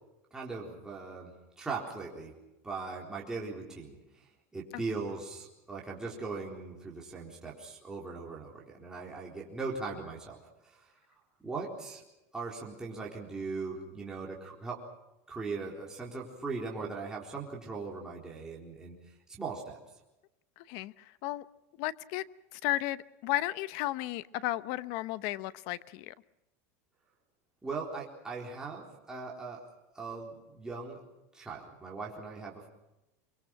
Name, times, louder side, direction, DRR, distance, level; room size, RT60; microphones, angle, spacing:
voice 1, 0.3-2.4 2.6-4.3 4.5-10.9 11.4-12.0 12.3-14.8 15.3-19.0 19.3-19.8 27.6-29.7 29.9-31.0 31.3-32.7, right 4 dB, 10° right, 4.1 m, -39 dB
voice 2, 20.6-21.4 21.8-22.3 22.5-26.1, left 16 dB, 55° left, 0.9 m, -34 dB
24.5 x 23.5 x 6.0 m
supercardioid pair, 150°, 8 cm